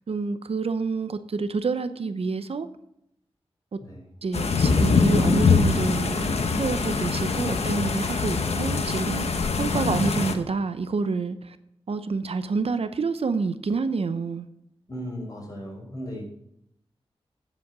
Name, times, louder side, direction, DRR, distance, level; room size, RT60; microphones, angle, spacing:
voice 1, 0.1-2.7 3.7-3.8 4.2-6.3 6.6-11.6 11.9-14.5, right 4 dB, 70° right, 11 dB, 0.7 m, -28 dB
sound 1, 4.3-10.3, left 4 dB, 85° left, 1.1 m, -23 dB
voice 2, 7.4-7.7 8.4-8.8 14.9-16.2, equal, 35° left, -2 dB, 5.3 m, -37 dB
9.8 x 7.8 x 6.1 m, 0.77 s
wide cardioid pair, 90°, 11 cm